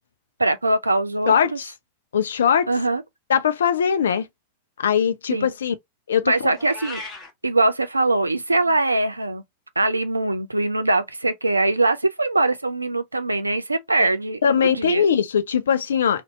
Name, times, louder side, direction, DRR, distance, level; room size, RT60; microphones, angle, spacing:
voice 1, 0.4-1.6 2.7-3.0 5.3-5.5 6.2-7.0 7.4-9.4 9.8-15.1, right 2 dB, 80° right, 0.4 m, -22 dB
voice 2, 1.3-1.7 2.1-2.7 3.3-4.3 4.8-5.7 6.1-6.5 14.0-14.1 14.4-16.2, left 7 dB, 65° left, 0.5 m, -20 dB
Meow, 6.5-7.3, left 2 dB, 25° left, 1.1 m, -36 dB
2.6 x 2.2 x 3.9 m
figure-of-eight pair, 90°, 0 cm